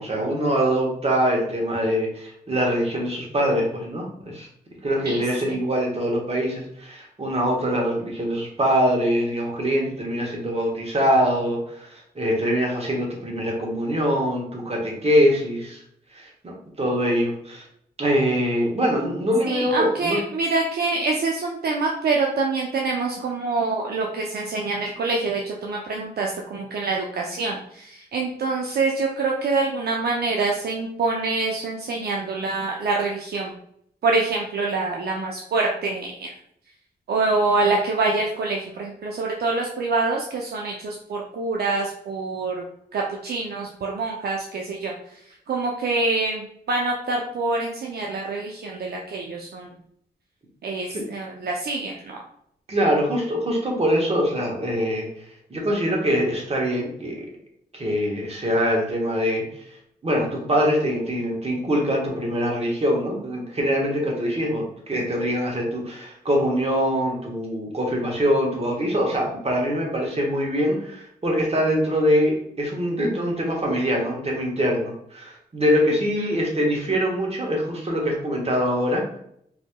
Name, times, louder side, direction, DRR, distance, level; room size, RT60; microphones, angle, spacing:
voice 1, 0.0-4.5 4.8-15.8 16.1-17.6 18.0-20.2 50.9-51.0 52.7-55.1 55.5-57.3 57.7-59.4 60.0-79.2, equal, 35° right, -1 dB, 1.3 m, -23 dB
voice 2, 5.1-5.6 19.5-33.5 34.0-36.3 37.1-42.6 42.9-44.9 45.5-49.7 50.6-52.2, right 3 dB, 65° right, -1 dB, 0.5 m, -25 dB
4.1 x 2.8 x 2.2 m, 0.71 s
cardioid pair, 50°, 17 cm